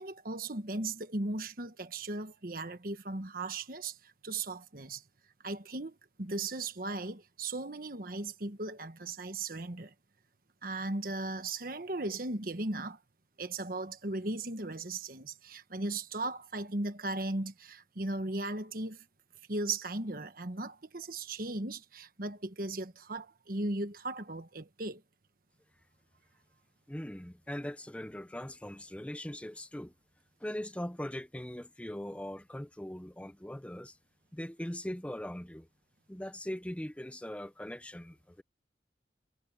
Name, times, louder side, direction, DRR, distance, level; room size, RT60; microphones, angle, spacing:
voice 1, 0.0-5.0 5.4-9.9 10.6-13.0 13.4-19.0 19.5-25.0, right 2 dB, 50° right, 1.4 m, -37 dB
voice 2, 26.9-29.9 30.4-34.0 34.3-35.7 36.1-38.4, left 1 dB, 5° left, 0.7 m, -40 dB
head